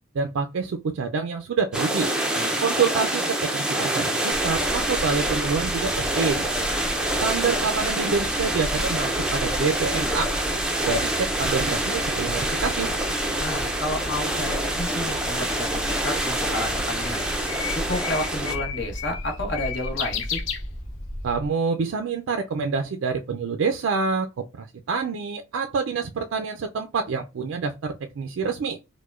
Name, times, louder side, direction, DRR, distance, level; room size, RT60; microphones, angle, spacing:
voice 1, 0.1-2.1 2.6-6.5 6.9-10.3 10.8-12.9 21.2-28.8, right 5 dB, 80° right, 0.4 m, -27 dB
sound 1, 1.7-18.5, right 1 dB, 5° right, 0.4 m, -26 dB
bass rumble deep subterranean subsonic, 4.3-21.5, equal, 30° left, 1.3 m, -35 dB
voice 2, 13.4-17.2 17.7-20.4, left 1 dB, 60° left, 1.1 m, -31 dB
Bird, 15.0-21.2, left 9 dB, 80° left, 0.6 m, -34 dB
4.7 x 2.1 x 2.4 m
head